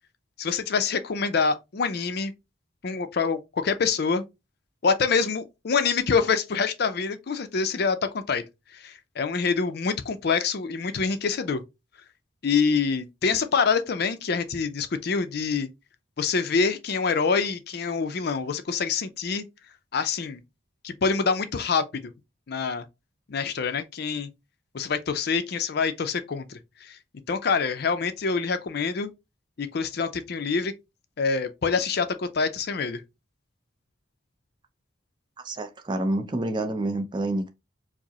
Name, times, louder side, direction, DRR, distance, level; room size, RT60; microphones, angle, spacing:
voice 1, 0.4-2.3 2.8-4.2 4.8-8.4 8.7-11.6 12.4-15.7 16.2-19.4 19.9-20.4 20.8-21.8 22.5-22.8 23.3-24.3 24.7-27.0 27.3-29.1 29.6-30.7 31.2-33.0, left 5 dB, 55° left, 0.5 m, -26 dB
voice 2, 35.4-37.5, right 1 dB, 25° right, 0.4 m, -28 dB
4.8 x 2.0 x 2.8 m
head